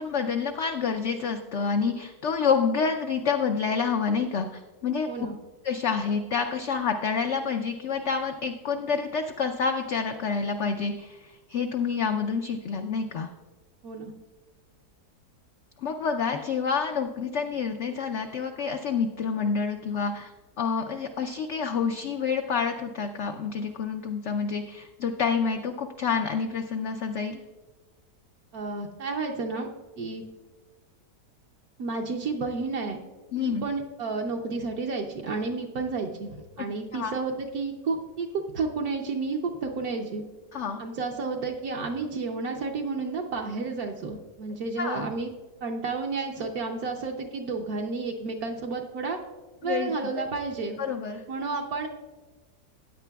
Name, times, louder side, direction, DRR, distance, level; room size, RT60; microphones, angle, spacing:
voice 1, 0.0-5.3 5.6-11.2 11.5-13.3 15.8-20.3 20.6-27.4 33.3-33.6 36.9-37.1 40.5-40.8 44.8-45.1 49.6-50.2 50.8-51.2, left 5 dB, 75° left, 5 dB, 0.6 m, -28 dB
voice 2, 5.1-5.4 13.8-14.1 28.5-29.7 30.0-30.2 31.8-33.0 33.4-40.2 40.8-45.3 45.6-49.2 49.6-50.8 51.3-51.9, right 4 dB, 70° right, 1 dB, 1.2 m, -31 dB
15.0 x 9.1 x 2.3 m, 1.3 s
omnidirectional pair, 1.7 m